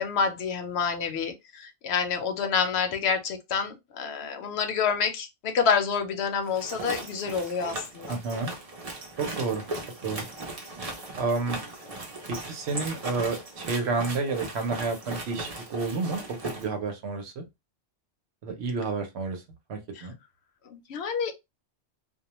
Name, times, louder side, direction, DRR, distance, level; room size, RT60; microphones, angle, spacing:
voice 1, 0.0-8.2 19.9-20.1 20.7-21.3, left 6 dB, 65° left, 0.8 m, -28 dB
sound 1, 6.4-16.7, right 2 dB, 40° right, 0.6 m, -38 dB
voice 2, 8.1-8.5 9.2-9.6 10.0-10.2 11.2-11.6 12.3-17.4 18.4-19.4 19.7-20.2, right 4 dB, 65° right, 0.9 m, -30 dB
2.3 x 2.2 x 2.9 m
omnidirectional pair, 1.2 m